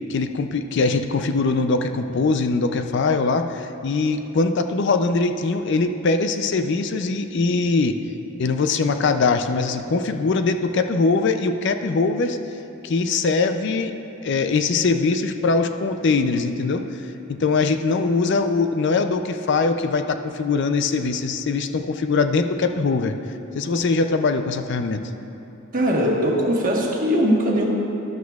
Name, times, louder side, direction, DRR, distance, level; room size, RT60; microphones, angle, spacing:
voice 1, 0.1-8.0 8.4-12.4 12.8-13.9 14.2-16.9 17.3-23.1 23.5-25.0, left 4 dB, 60° left, 7 dB, 0.4 m, -22 dB
voice 2, 25.7-27.6, equal, 45° right, -1 dB, 1.3 m, -20 dB
12.5 x 11.5 x 2.3 m, 2.9 s
head